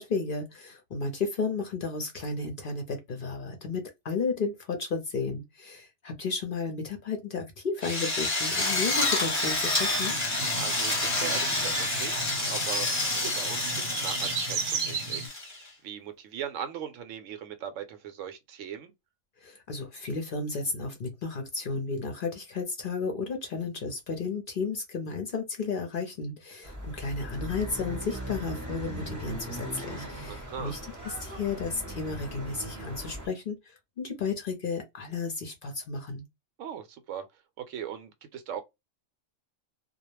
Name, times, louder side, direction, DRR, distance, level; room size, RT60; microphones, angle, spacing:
voice 1, 0.0-10.2 19.4-30.8 31.0-36.2, left 4 dB, 55° left, 0.6 m, -33 dB
Drill, 7.8-15.7, left 2 dB, 15° left, 0.8 m, -28 dB
sound 1, 9.9-15.3, right 5 dB, 60° right, 0.8 m, -36 dB
voice 2, 10.5-15.5 15.8-18.9 30.3-30.8 36.6-37.2 37.6-38.6, right 8 dB, 80° right, 0.9 m, -39 dB
sound 2, 26.6-33.3, right 1 dB, 20° right, 0.6 m, -39 dB
2.3 x 2.1 x 3.0 m
omnidirectional pair, 1.3 m